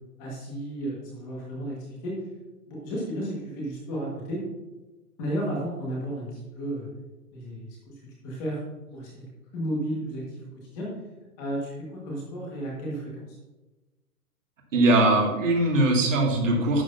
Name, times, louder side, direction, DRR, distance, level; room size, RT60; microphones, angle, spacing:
voice 1, 0.2-2.2 2.7-4.4 5.2-6.9 7.3-8.6 8.9-9.3 9.5-10.9 11.4-13.4, right 1 dB, 15° left, -4 dB, 1.7 m, -33 dB
voice 2, 14.7-16.8, right 2 dB, 50° right, 0 dB, 2.4 m, -21 dB
11.0 x 7.8 x 2.7 m, 1.1 s
hypercardioid pair, 180°, 47 cm